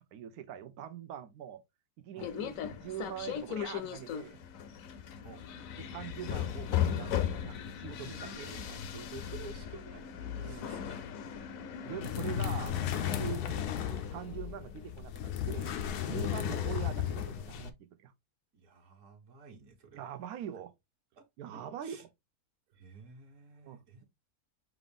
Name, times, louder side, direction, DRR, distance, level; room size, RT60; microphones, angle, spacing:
voice 1, 0.0-1.6 2.0-4.4 5.8-8.1 10.4-10.8 11.8-12.8 13.1-15.7 16.0-18.1 19.9-20.7 21.4-22.1 23.6-24.0, right 10 dB, 80° right, 1.1 m, -43 dB
sound 1, 2.2-13.3, left 9 dB, 70° left, 1.0 m, -37 dB
voice 2, 8.0-11.1 14.3-14.4 16.5-16.7 18.5-20.1 21.2-21.3 21.5-22.0 22.7-24.0, right 4 dB, 55° right, 1.6 m, -51 dB
sound 2, 12.0-17.7, left 9 dB, 90° left, 1.2 m, -34 dB
5.9 x 2.5 x 3.5 m
omnidirectional pair, 1.6 m